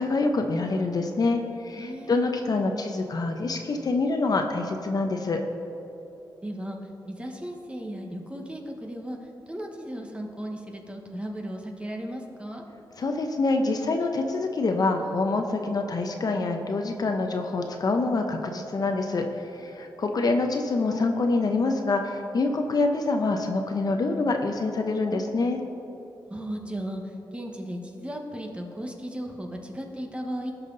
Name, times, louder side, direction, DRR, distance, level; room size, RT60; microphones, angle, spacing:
voice 1, 0.0-5.4 13.0-25.6, left 3 dB, 50° left, 4 dB, 0.8 m, -26 dB
voice 2, 1.8-2.2 6.4-9.2 9.5-12.6 26.3-27.0 27.3-30.5, equal, 15° right, 2 dB, 1.3 m, -36 dB
17.5 x 5.9 x 4.0 m, 3.0 s
cardioid pair, 80°, 8 cm